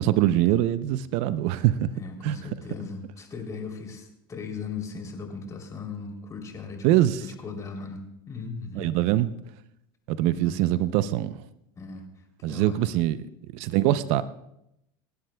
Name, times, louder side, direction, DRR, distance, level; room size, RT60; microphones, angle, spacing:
voice 1, 0.0-1.9 2.2-2.4 6.8-7.2 8.8-9.3 10.1-11.4 12.4-13.3 13.5-14.2, right 13 dB, 60° right, 14 dB, 0.6 m, -23 dB
voice 2, 1.9-6.9 7.2-8.9 10.3-10.6 11.7-12.1 12.5-12.9, left 5 dB, 25° left, 3 dB, 3.1 m, -38 dB
28.0 x 11.5 x 2.3 m, 0.81 s
supercardioid pair, 110°, 12 cm